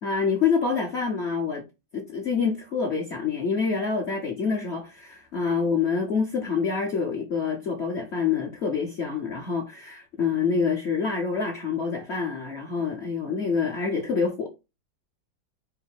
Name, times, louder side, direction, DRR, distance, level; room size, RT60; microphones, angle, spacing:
voice 1, 0.0-1.6 1.9-14.5, left 5 dB, 50° left, 0.9 m, -26 dB
4.7 x 2.6 x 3.4 m
omnidirectional pair, 2.0 m